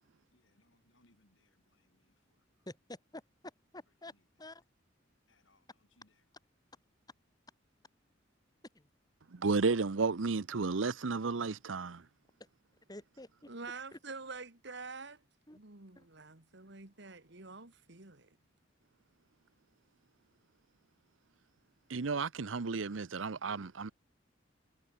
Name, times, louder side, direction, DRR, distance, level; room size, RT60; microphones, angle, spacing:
voice 1, 0.3-2.7 4.0-4.4 5.3-6.2, left 2 dB, 80° left, 7.7 m, -72 dB
voice 2, 2.7-3.2 3.7-4.1 4.4-4.6 8.7-8.9 12.9-13.5 13.9-14.0 15.5-15.6 15.9-16.1, left 1 dB, 20° left, 3.1 m, -49 dB
voice 3, 9.3-12.0 21.9-23.9, right 4 dB, 85° right, 0.8 m, -33 dB
voice 4, 13.5-15.2 15.5-18.4, right 4 dB, 65° right, 2.5 m, -47 dB
head